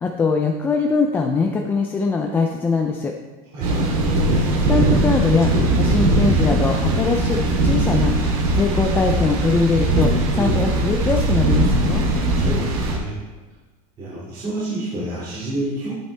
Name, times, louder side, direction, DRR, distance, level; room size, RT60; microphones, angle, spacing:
voice 1, 0.0-3.1 4.7-8.1 8.5-12.0, left 4 dB, 10° left, 2 dB, 0.4 m, -22 dB
voice 2, 3.5-3.9 10.3-10.6 12.3-13.1 14.0-15.9, right 1 dB, 25° right, -10 dB, 2.3 m, -28 dB
sound 1, 3.6-13.0, right 2 dB, 90° right, 3.0 m, -20 dB
12.0 x 8.4 x 3.3 m, 1.2 s
supercardioid pair, 170°, 19 cm